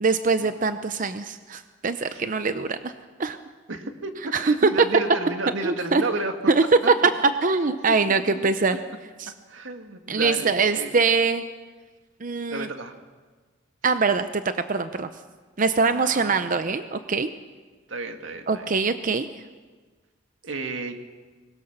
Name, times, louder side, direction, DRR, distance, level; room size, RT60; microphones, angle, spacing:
voice 1, 0.0-2.9 3.2-3.4 4.3-4.7 5.6-6.0 6.5-6.6 7.4-8.8 9.2-9.3 10.1-11.4 12.2-12.7 13.8-14.4 14.7-15.1 15.6-17.3 18.5-19.4, right 4 dB, 45° right, 10 dB, 0.7 m, -23 dB
voice 2, 2.0-2.3 3.7-6.3 6.8-6.9 8.3-8.5 9.5-10.9 12.5-13.0 13.8-13.9 15.8-16.4 17.9-18.7 20.4-20.9, right 2 dB, 90° right, 6 dB, 2.0 m, -32 dB
23.5 x 20.5 x 6.7 m, 1.4 s
head